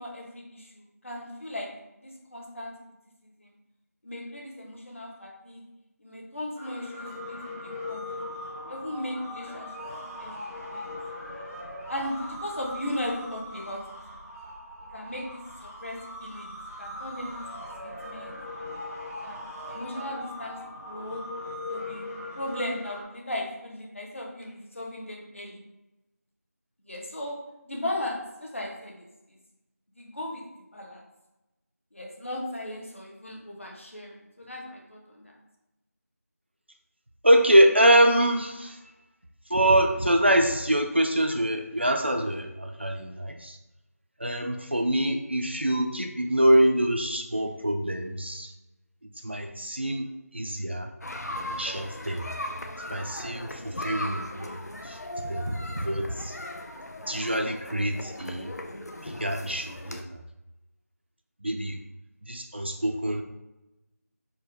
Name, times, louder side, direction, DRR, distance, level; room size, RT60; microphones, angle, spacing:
voice 1, 0.0-1.7 2.0-2.7 3.4-3.5 4.0-5.6 6.0-8.2 8.7-9.7 10.0-10.9 11.9-13.8 14.1-14.2 14.9-18.4 19.2-20.6 20.9-21.2 21.7-22.1 22.3-25.6 26.8-27.4 27.6-29.0 29.9-30.4 30.7-31.0 31.9-35.3, left 1 dB, 50° left, -1 dB, 1.0 m, -37 dB
sound 1, 6.5-23.0, left 1 dB, 10° left, 0.6 m, -40 dB
voice 2, 37.2-38.8 39.5-43.6 44.2-48.5 49.2-50.9 51.3-52.2 52.9-54.6 54.8-56.3 57.1-58.5 59.0-60.0 61.4-61.8 62.3-63.2, right 1 dB, 45° right, 4 dB, 0.3 m, -24 dB
sound 2, 51.0-60.0, left 1 dB, 75° left, 0.5 m, -38 dB
4.4 x 2.1 x 4.6 m, 0.98 s
figure-of-eight pair, 175°, 9 cm